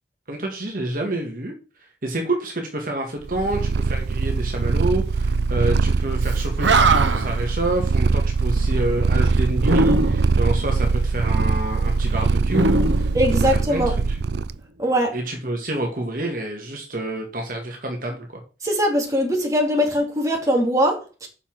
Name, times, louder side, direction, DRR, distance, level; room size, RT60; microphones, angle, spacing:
voice 1, 0.3-1.5 2.0-13.1 13.7-14.2 15.1-18.4, right 1 dB, 50° right, 2 dB, 2.0 m, -28 dB
Purr, 3.2-14.5, right 4 dB, 65° right, 0.4 m, -22 dB
Animal, 6.3-6.4 6.6-7.4 9.6-10.4 12.5-13.8, right 2 dB, 85° right, 1.0 m, -21 dB
voice 2, 13.1-13.9 14.8-15.2 18.6-21.3, equal, 20° right, 0 dB, 2.8 m, -21 dB
7.0 x 5.7 x 7.4 m, 0.35 s
head